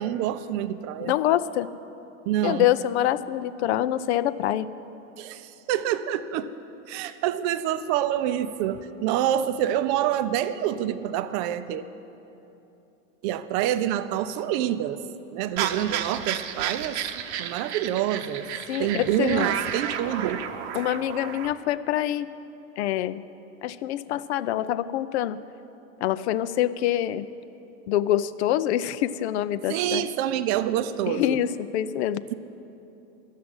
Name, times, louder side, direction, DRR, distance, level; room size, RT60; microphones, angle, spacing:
voice 1, 0.0-1.1 2.2-2.7 5.2-6.5 6.9-11.9 13.2-15.0 15.3-17.0 17.4-18.5 18.8-20.4 29.7-31.4, right 11 dB, 40° right, 12 dB, 0.6 m, -27 dB
voice 2, 1.0-1.7 2.4-4.7 18.7-19.5 20.7-22.3 22.8-23.2 23.6-25.4 26.0-27.3 27.9-30.0 31.1-32.2, left 12 dB, 55° left, 15 dB, 0.6 m, -25 dB
sound 1, 15.6-21.5, right 9 dB, 55° right, 0.9 m, -32 dB
12.0 x 7.4 x 9.6 m, 2.9 s
hypercardioid pair, 125°, 40 cm